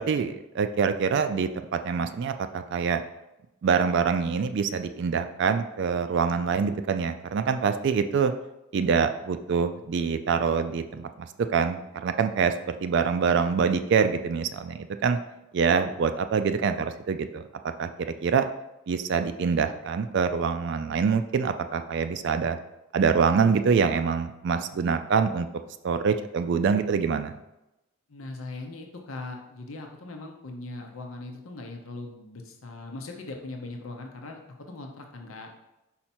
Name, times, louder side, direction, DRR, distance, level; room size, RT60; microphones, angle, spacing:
voice 1, 0.0-1.5 1.8-3.0 3.6-8.3 8.7-11.3 11.5-15.2 15.5-17.4 17.8-18.4 18.9-22.6 22.9-25.5 25.8-27.3, right 6 dB, 60° right, 9 dB, 0.3 m, -25 dB
voice 2, 28.1-35.5, left 2 dB, 90° left, 2 dB, 0.8 m, -40 dB
5.6 x 4.3 x 4.3 m, 0.93 s
head